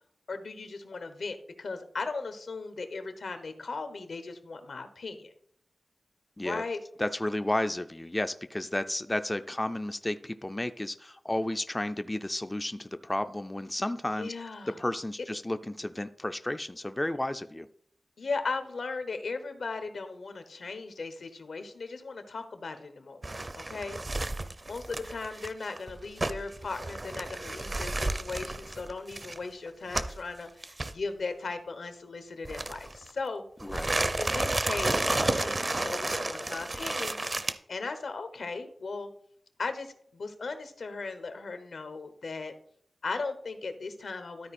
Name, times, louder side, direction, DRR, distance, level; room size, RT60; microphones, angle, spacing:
voice 1, 0.3-5.3 6.4-6.8 14.1-14.8 18.2-23.2 23.5-24.0 24.6-33.4 34.2-37.2 37.7-39.1 39.6-42.5 43.0-44.5, left 4 dB, 80° left, 9 dB, 1.1 m, -37 dB
voice 2, 7.0-14.3 14.8-17.7 33.6-34.0, left 1 dB, 15° left, 9 dB, 0.4 m, -32 dB
sound 1, 23.2-30.2 30.6-30.9 32.4-33.1 33.6-37.5, right 2 dB, 35° right, 0.6 m, -32 dB
12.5 x 4.6 x 4.3 m, 0.64 s
wide cardioid pair, 100°, 0 cm